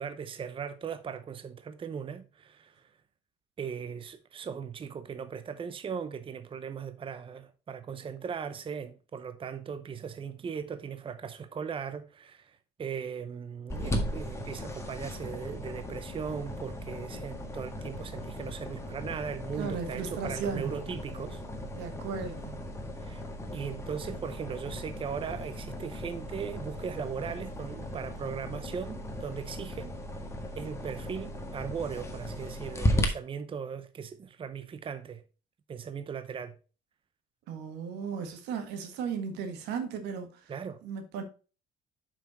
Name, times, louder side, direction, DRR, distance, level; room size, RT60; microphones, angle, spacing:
voice 1, 0.0-2.9 3.6-21.4 23.0-23.2 23.5-30.0 30.6-35.2 35.7-36.5 40.5-40.8, right 6 dB, 30° right, 0.7 m, -38 dB
sound 1, 13.7-33.1, equal, 15° left, 1.7 m, -36 dB
voice 2, 19.6-20.8 21.7-22.7 37.5-40.5 40.8-41.2, right 6 dB, 90° right, 1.7 m, -36 dB
6.9 x 5.9 x 4.2 m
cardioid pair, 110°, 17 cm